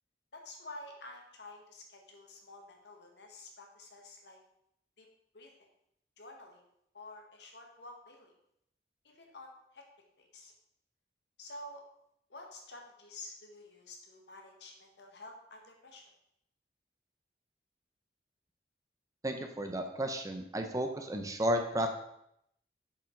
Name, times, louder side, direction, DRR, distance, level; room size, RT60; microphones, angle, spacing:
voice 1, 0.3-4.4 5.0-5.1 5.3-5.7 6.2-6.6 6.9-8.3 9.0-9.8 10.2-10.5 11.4-11.8 12.3-16.0, left 2 dB, 70° left, 2 dB, 1.6 m, -50 dB
voice 2, 19.2-21.9, right 1 dB, 20° right, 5 dB, 0.7 m, -33 dB
7.1 x 5.4 x 5.2 m, 0.76 s
head